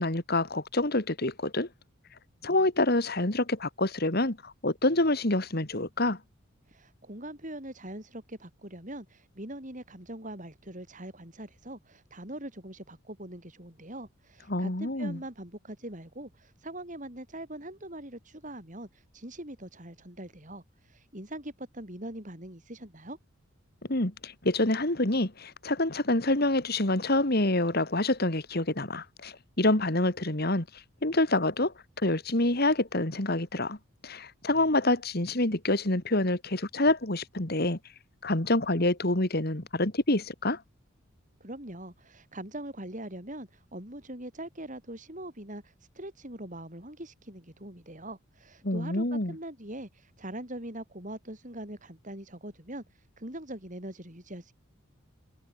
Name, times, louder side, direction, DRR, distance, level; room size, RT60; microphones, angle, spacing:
voice 1, 0.0-1.7 2.4-6.2 14.5-15.2 23.9-30.7 31.0-33.8 34.0-37.8 38.2-40.6 48.6-49.3, left 2 dB, 50° left, 2.5 m, -27 dB
voice 2, 6.7-23.2 41.4-54.5, right 1 dB, 35° right, 5.5 m, -42 dB
head